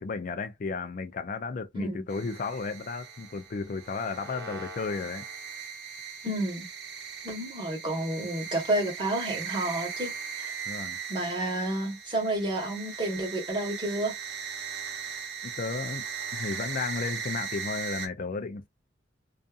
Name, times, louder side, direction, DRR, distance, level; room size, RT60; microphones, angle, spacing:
voice 1, 0.0-5.2 10.7-11.0 15.4-16.0 16.3-18.7, left 4 dB, 45° left, 0.4 m, -33 dB
sound 1, 2.1-18.1, right 6 dB, 65° right, 0.8 m, -38 dB
voice 2, 6.2-6.7 7.2-10.5 11.1-14.1, right 1 dB, 25° right, 1.2 m, -30 dB
2.6 x 2.4 x 2.4 m
head